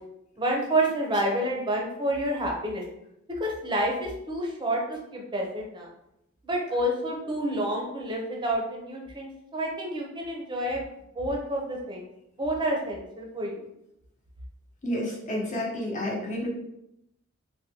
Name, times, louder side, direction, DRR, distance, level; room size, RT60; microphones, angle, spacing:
voice 1, 0.4-2.8 3.4-5.9 6.4-10.8 11.1-12.1 12.4-13.7, right 1 dB, 25° right, -1 dB, 0.6 m, -29 dB
voice 2, 14.8-16.5, left 1 dB, 35° left, -3 dB, 0.9 m, -30 dB
3.5 x 2.2 x 2.8 m, 0.82 s
head